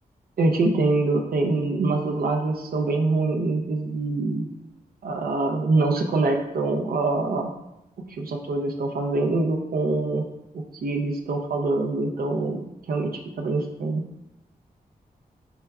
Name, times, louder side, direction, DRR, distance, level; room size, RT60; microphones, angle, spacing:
voice 1, 0.4-4.4 5.0-7.5 8.2-10.2 10.5-14.0, right 3 dB, 70° right, 2 dB, 0.5 m, -24 dB
5.7 x 3.2 x 2.3 m, 0.89 s
wide cardioid pair, 115°, 16 cm